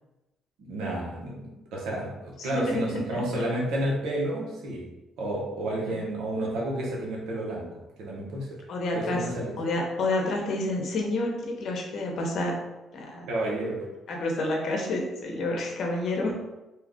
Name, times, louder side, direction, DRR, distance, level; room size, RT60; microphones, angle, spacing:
voice 1, 0.7-4.9 5.2-7.7 8.0-8.5 8.9-9.5 13.3-13.8, right 1 dB, 85° right, -3 dB, 0.9 m, -30 dB
voice 2, 2.4-2.8 3.1-3.4 5.9-6.0 8.7-9.3 9.6-12.6 12.9-13.3 14.1-16.3, left 2 dB, 65° left, 0 dB, 0.8 m, -29 dB
2.8 x 2.4 x 3.6 m, 1.0 s
cardioid pair, 100°, 0 cm